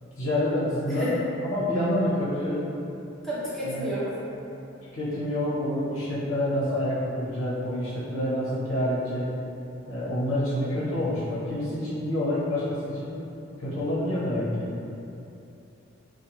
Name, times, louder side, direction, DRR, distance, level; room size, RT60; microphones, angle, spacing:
voice 1, 0.2-1.1 1.4-2.6 3.6-3.9 4.9-9.3 9.9-13.1 13.6-14.7, left 1 dB, 75° left, -9 dB, 0.8 m, -27 dB
voice 2, 3.2-4.1, equal, ahead, -11 dB, 0.6 m, -30 dB
2.4 x 2.3 x 2.9 m, 2.8 s
head